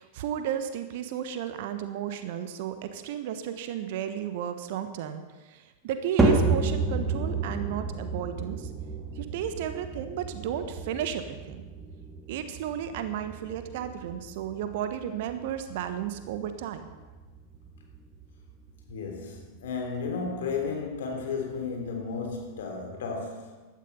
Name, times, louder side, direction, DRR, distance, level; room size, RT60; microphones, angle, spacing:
voice 1, 0.0-5.2 5.5-8.7 9.2-11.6 12.3-16.9, right 9 dB, 50° right, 9 dB, 1.4 m, -33 dB
sound 1, 6.2-22.6, right 3 dB, 10° right, 3.0 m, -32 dB
voice 2, 18.9-23.7, left 5 dB, 60° left, 1 dB, 3.5 m, -33 dB
16.0 x 12.0 x 5.6 m, 1.2 s
figure-of-eight pair, 90°, 0 cm